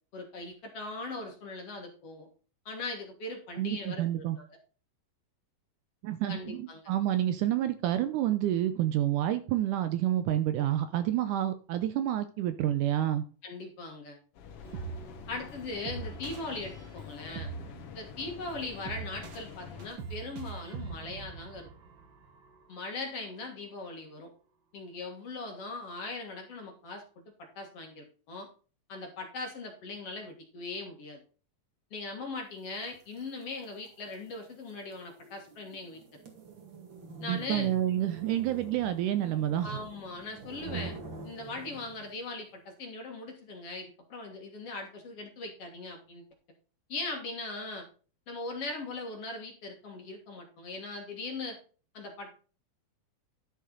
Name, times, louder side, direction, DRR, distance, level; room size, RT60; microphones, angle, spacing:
voice 1, 0.1-2.3 2.7-4.6 6.3-6.8 13.4-14.2 15.3-17.5 17.9-21.7 22.7-24.3 24.7-27.0 27.4-28.5 28.9-31.2 31.9-36.2 37.2-37.7 39.6-40.9 41.2-46.2 46.9-47.9 48.3-51.6 51.9-52.3, left 3 dB, 50° left, 3 dB, 2.3 m, -40 dB
voice 2, 3.6-4.4 6.0-13.2 37.3-39.8, right 12 dB, 75° right, 11 dB, 2.0 m, -29 dB
Mechanical fan, 14.3-19.9, left 7 dB, 70° left, 1.3 m, -47 dB
sound 1, 14.6-22.8, right 5 dB, 55° right, 1.3 m, -43 dB
sound 2, 32.8-42.2, right 3 dB, 40° right, 2.2 m, -46 dB
11.0 x 6.7 x 3.9 m, 0.37 s
omnidirectional pair, 4.0 m